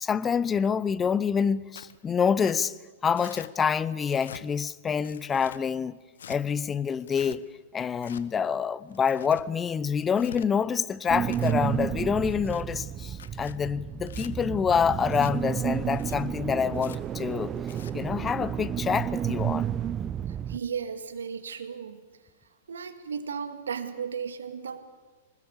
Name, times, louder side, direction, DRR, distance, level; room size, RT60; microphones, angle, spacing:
voice 1, 0.0-2.7 3.0-6.0 6.3-7.4 7.7-17.5 17.9-19.7, left 7 dB, 20° left, 0.8 m, -27 dB
Tearing, 1.7-2.0 2.4-2.6 3.2-3.5 4.0-4.4 5.0-5.6 6.1-6.4 7.0-7.4 8.0-8.2 8.9-9.4 10.0-10.5 11.1-11.6 12.2-12.6 13.1-13.6 14.0-14.3 15.0-15.3 15.9-16.2 16.7-17.0 17.6-17.9, left 8 dB, 65° left, 1.2 m, -46 dB
sound 1, 11.1-20.6, right 9 dB, 25° right, 0.7 m, -31 dB
voice 2, 20.5-22.0 22.7-24.8, right 6 dB, 70° right, 2.0 m, -35 dB
25.0 x 20.0 x 8.4 m
figure-of-eight pair, 105°, 0 cm